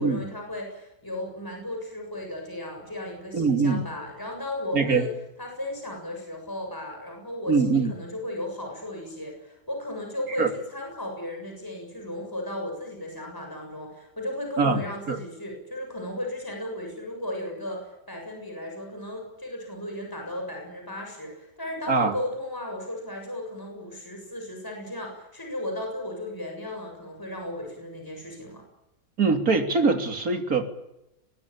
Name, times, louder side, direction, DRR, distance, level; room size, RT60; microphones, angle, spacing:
voice 1, 0.0-5.1 5.4-28.6, left 1 dB, 10° left, 2 dB, 7.1 m, -35 dB
voice 2, 3.3-3.8 4.7-5.1 7.5-7.9 10.4-10.5 14.6-14.8 15.1-15.2 21.9-22.1 29.2-30.6, right 4 dB, 50° right, 5 dB, 3.5 m, -22 dB
25.0 x 22.0 x 8.8 m, 0.89 s
omnidirectional pair, 2.0 m